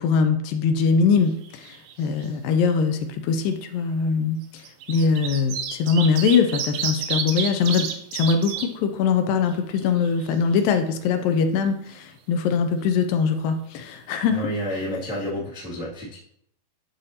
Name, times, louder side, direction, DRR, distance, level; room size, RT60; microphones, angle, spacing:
voice 1, 0.0-4.6 4.9-14.4, left 5 dB, 80° left, 7 dB, 2.2 m, -22 dB
sound 1, 1.2-1.9 2.2-2.3 3.4-3.5 4.4-8.7 9.1-9.2 9.5-10.5 14.4-14.5 14.7-14.8, right 7 dB, 85° right, 2.6 m, -30 dB
voice 2, 14.3-16.2, equal, 5° right, -7 dB, 0.4 m, -30 dB
12.0 x 4.1 x 2.8 m, 0.71 s
omnidirectional pair, 4.2 m